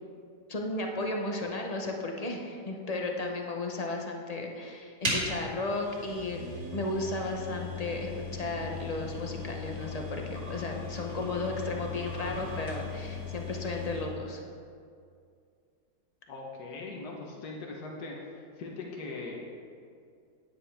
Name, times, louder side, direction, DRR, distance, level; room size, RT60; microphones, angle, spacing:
voice 1, 0.5-6.4 6.7-14.4, left 2 dB, 35° left, 1 dB, 0.7 m, -34 dB
sound 1, 5.0-14.2, left 3 dB, 45° right, 2.5 m, -37 dB
voice 2, 16.3-19.4, left 3 dB, 85° left, -2 dB, 1.6 m, -40 dB
9.9 x 9.6 x 3.4 m, 2.3 s
omnidirectional pair, 1.7 m